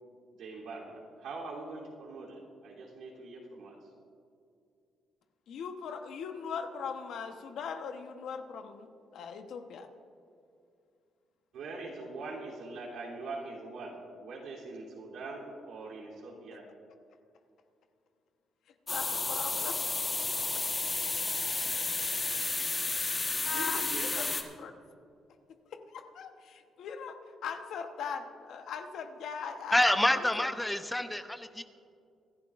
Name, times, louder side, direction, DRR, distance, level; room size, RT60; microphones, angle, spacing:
voice 1, 0.4-3.9 11.5-16.7 23.5-24.4, right 3 dB, 80° right, -4 dB, 3.2 m, -43 dB
voice 2, 5.5-8.9 9.1-9.9 18.9-19.8 23.4-24.3 24.6-24.7 25.7-29.9 30.4-30.5, left 6 dB, 75° left, 6 dB, 1.0 m, -40 dB
sound 1, 18.9-24.4, left 3 dB, 30° left, 1.3 m, -32 dB
voice 3, 29.7-31.6, left 1 dB, 10° left, 9 dB, 0.7 m, -27 dB
25.5 x 11.5 x 2.5 m, 2.5 s
cardioid pair, 90°, 0 cm